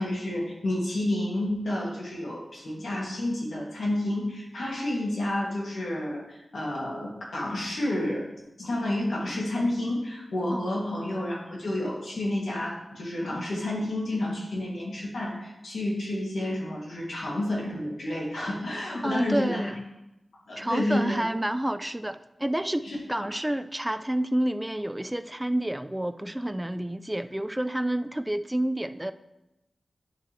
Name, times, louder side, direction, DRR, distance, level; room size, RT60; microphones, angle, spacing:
voice 1, 0.0-8.3 8.6-19.7 20.5-21.2 22.8-23.3, left 1 dB, 80° left, -4 dB, 2.3 m, -30 dB
voice 2, 19.0-19.7 20.6-29.1, right 1 dB, 15° right, 12 dB, 0.3 m, -29 dB
10.5 x 6.6 x 3.2 m, 0.94 s
wide cardioid pair, 65°, 0 cm